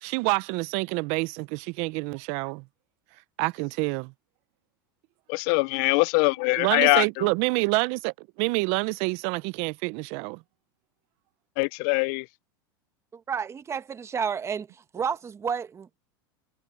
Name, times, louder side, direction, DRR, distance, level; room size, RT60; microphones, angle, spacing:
voice 1, 0.0-2.6 3.4-4.1 6.6-10.4, right 27 dB, 55° right, 0.7 m, -27 dB
voice 2, 5.3-7.3 11.6-12.3, left 32 dB, 55° left, 0.4 m, -23 dB
voice 3, 13.1-14.7 14.9-16.0, right 7 dB, 20° right, 1.2 m, -31 dB
hypercardioid pair, 110°, 12 cm